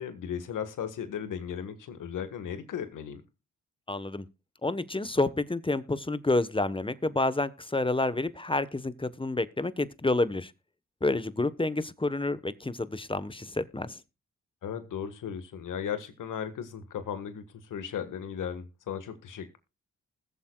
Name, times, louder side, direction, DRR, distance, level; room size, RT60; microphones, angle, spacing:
voice 1, 0.0-3.2 14.6-19.6, left 8 dB, 85° left, 1.6 m, -36 dB
voice 2, 3.9-4.3 4.6-10.5 11.0-14.0, left 2 dB, 15° left, 1.1 m, -29 dB
20.5 x 7.2 x 2.3 m
supercardioid pair, 50°, 31 cm